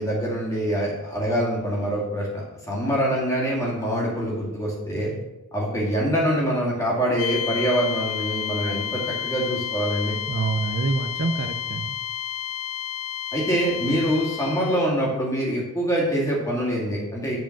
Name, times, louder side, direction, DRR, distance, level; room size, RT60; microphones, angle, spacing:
voice 1, 0.0-5.1 5.5-10.2 13.3-17.4, equal, 15° left, -4 dB, 2.2 m, -25 dB
sound 1, 7.2-14.9, left 10 dB, 90° left, 0.4 m, -31 dB
voice 2, 10.3-11.9, right 3 dB, 50° right, 7 dB, 0.5 m, -27 dB
7.7 x 5.0 x 5.8 m, 1.0 s
head